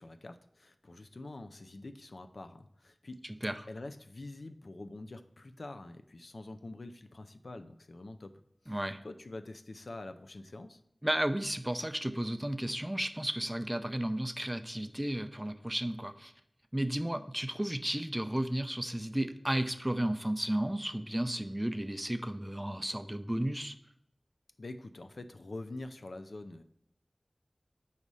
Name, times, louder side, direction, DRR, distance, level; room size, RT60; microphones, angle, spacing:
voice 1, 0.0-3.2 3.7-10.8 24.6-26.6, left 2 dB, 90° left, 8 dB, 0.4 m, -46 dB
voice 2, 3.2-3.6 8.7-9.0 11.0-16.3 16.7-23.8, right 1 dB, 15° right, 10 dB, 0.5 m, -33 dB
4.8 x 4.2 x 5.3 m, 0.76 s
wide cardioid pair, 45°, 0 cm